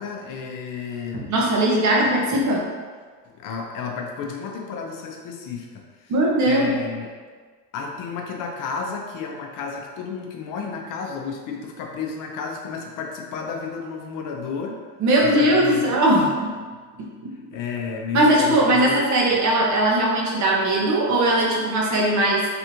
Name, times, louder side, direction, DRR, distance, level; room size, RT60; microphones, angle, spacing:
voice 1, 0.0-1.3 3.4-6.1 6.4-7.1 7.7-14.8 15.2-16.0 17.5-19.0, left 5 dB, 45° left, 1 dB, 0.6 m, -32 dB
voice 2, 1.1-2.7 6.1-6.7 15.0-16.5 17.0-17.3 18.1-22.5, right 1 dB, 40° right, -2 dB, 0.8 m, -19 dB
3.4 x 2.4 x 2.9 m, 1.5 s
cardioid pair, 125°, 47 cm